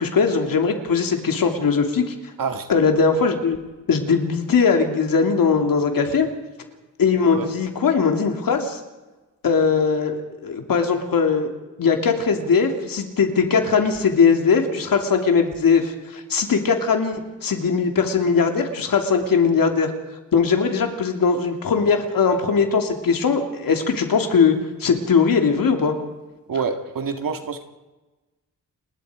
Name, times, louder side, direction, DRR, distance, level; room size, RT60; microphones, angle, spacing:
voice 1, 0.0-2.1 2.7-3.6 3.9-6.3 7.0-8.8 9.4-11.5 11.8-19.9 20.3-25.9, left 5 dB, 85° left, 4 dB, 2.9 m, -20 dB
voice 2, 2.4-2.7 7.3-7.5 26.5-27.6, right 5 dB, 80° right, 6 dB, 2.0 m, -26 dB
29.5 x 20.5 x 5.0 m, 1.2 s
wide cardioid pair, 175°, 33 cm